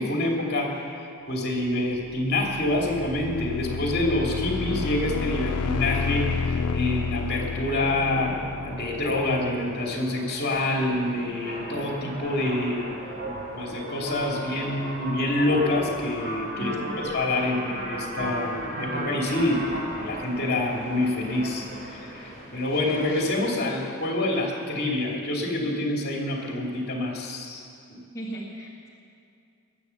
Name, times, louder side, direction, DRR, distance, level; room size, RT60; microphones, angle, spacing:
voice 1, 0.0-8.4 8.6-12.8 13.5-16.8 17.0-19.7 20.0-27.6 27.9-28.0, left 1 dB, 45° left, -1 dB, 2.5 m, -27 dB
sound 1, 2.0-9.7, left 5 dB, 80° left, 0.5 m, -31 dB
sound 2, 4.7-23.4, right 1 dB, 50° right, 3.7 m, -37 dB
voice 2, 16.6-17.0 28.1-28.9, right 1 dB, 15° left, -6 dB, 1.8 m, -36 dB
20.0 x 7.9 x 7.0 m, 2.5 s
head